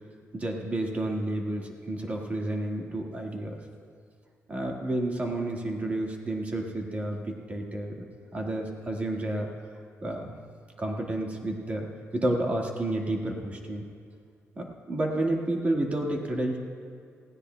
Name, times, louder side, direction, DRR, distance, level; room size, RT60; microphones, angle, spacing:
voice 1, 0.3-3.6 4.5-8.0 8.3-9.5 10.0-10.3 10.8-11.9 12.1-13.8 14.6-16.6, right 1 dB, 30° right, 0 dB, 1.7 m, -30 dB
19.5 x 16.5 x 2.2 m, 2.4 s
wide cardioid pair, 150°, 5 cm